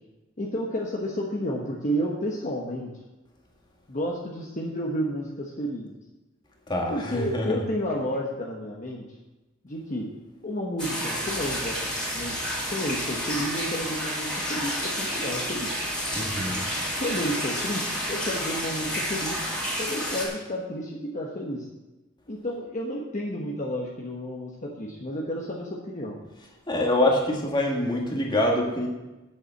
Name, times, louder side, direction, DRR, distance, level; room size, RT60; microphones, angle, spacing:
voice 1, 0.4-2.9 3.9-5.9 6.9-9.0 9.6-10.1 10.4-11.8 12.1-15.7 17.0-19.4 19.8-21.6 22.3-26.2, equal, 35° left, -2 dB, 1.1 m, -31 dB
voice 2, 6.7-7.6 16.1-16.6 26.7-28.9, left 1 dB, 20° left, 0 dB, 1.8 m, -25 dB
sound 1, 10.8-20.3, equal, 5° left, 3.2 m, -30 dB
8.3 x 7.1 x 7.1 m, 1.1 s
head